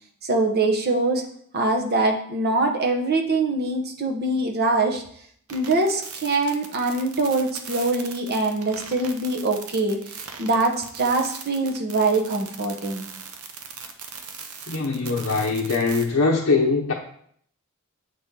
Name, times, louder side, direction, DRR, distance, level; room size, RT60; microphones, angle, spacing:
voice 1, 0.2-1.2 1.5-5.0 5.5-13.1, right 2 dB, 45° right, 3 dB, 0.9 m, -23 dB
sound 1, 5.5-16.1, right 6 dB, 75° right, 0.7 m, -39 dB
voice 2, 14.7-16.9, left 4 dB, 65° left, -1 dB, 0.7 m, -22 dB
7.5 x 4.2 x 3.7 m, 0.64 s
head